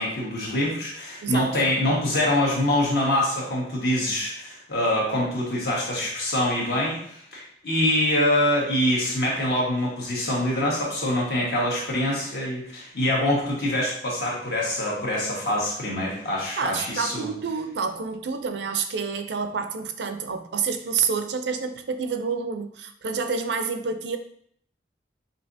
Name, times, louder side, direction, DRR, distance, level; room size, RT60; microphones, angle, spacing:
voice 1, 0.0-17.3, left 1 dB, 65° left, -4 dB, 1.4 m, -25 dB
voice 2, 1.2-1.5 16.6-24.2, right 5 dB, 75° right, 8 dB, 0.4 m, -28 dB
5.5 x 2.7 x 2.6 m, 0.65 s
head